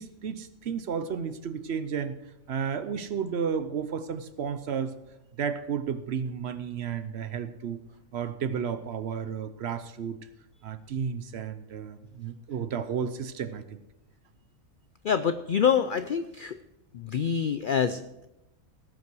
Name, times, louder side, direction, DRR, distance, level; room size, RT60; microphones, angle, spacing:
voice 1, 0.0-2.2 2.5-5.0 5.4-7.8 8.1-10.2 10.6-13.8, right 7 dB, 60° right, 12 dB, 0.9 m, -32 dB
voice 2, 15.0-16.6 16.9-18.3, left 7 dB, 90° left, 11 dB, 0.4 m, -26 dB
17.0 x 5.8 x 6.1 m, 0.93 s
omnidirectional pair, 1.4 m